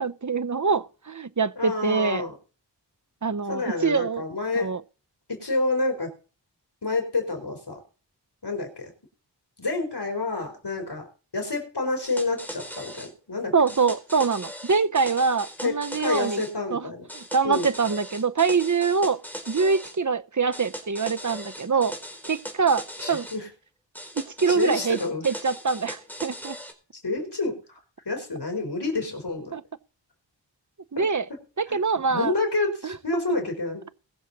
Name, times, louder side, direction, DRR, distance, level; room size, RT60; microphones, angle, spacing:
voice 1, 0.0-2.2 3.2-4.2 4.5-4.8 13.5-16.4 16.7-19.2 19.5-21.9 22.2-23.3 24.2-25.0 25.2-26.6 29.5-29.6 30.9-31.3 31.6-32.3 32.8-33.0, right 5 dB, 45° right, 0.8 m, -24 dB
voice 2, 1.6-2.3 3.5-4.7 5.3-6.1 6.8-7.8 8.4-8.9 9.6-11.1 11.3-13.5 15.6-17.1 17.4-17.7 23.0-23.5 24.5-25.2 27.0-27.8 28.1-29.5 31.0-31.1 31.7-31.8 32.1-33.8, left 3 dB, 60° left, 4.5 m, -28 dB
sound 1, 12.0-13.1 13.7-16.5 17.1-20.0 20.5-23.4 23.9-26.7, equal, 5° left, 4.2 m, -39 dB
22.0 x 7.4 x 4.1 m
wide cardioid pair, 45°, 44 cm